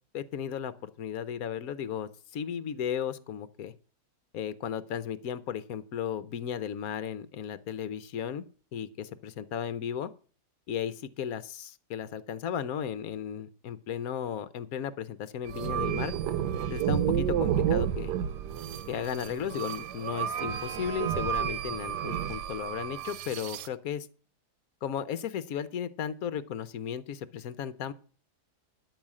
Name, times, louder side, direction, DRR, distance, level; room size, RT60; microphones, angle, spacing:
voice 1, 0.1-3.7 4.3-8.5 8.7-10.1 10.7-16.1 16.7-18.1 18.9-24.1 24.8-27.9, left 8 dB, 65° left, 16 dB, 1.2 m, -35 dB
sound 1, 15.5-23.7, right 9 dB, 85° right, 1.3 m, -31 dB
12.5 x 5.7 x 7.5 m, 0.40 s
omnidirectional pair, 1.8 m